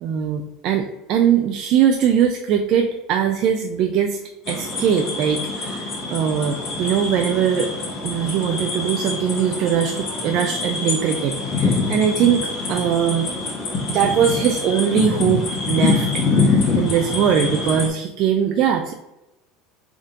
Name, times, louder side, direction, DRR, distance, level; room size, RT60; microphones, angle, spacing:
voice 1, 0.0-4.2 4.5-7.7 8.0-13.3 13.9-18.9, right 8 dB, 50° right, 4 dB, 0.3 m, -21 dB
sound 1, 4.5-17.9, left 4 dB, 45° left, 1.2 m, -25 dB
3.5 x 2.7 x 3.6 m, 0.94 s
supercardioid pair, 140°, 0 cm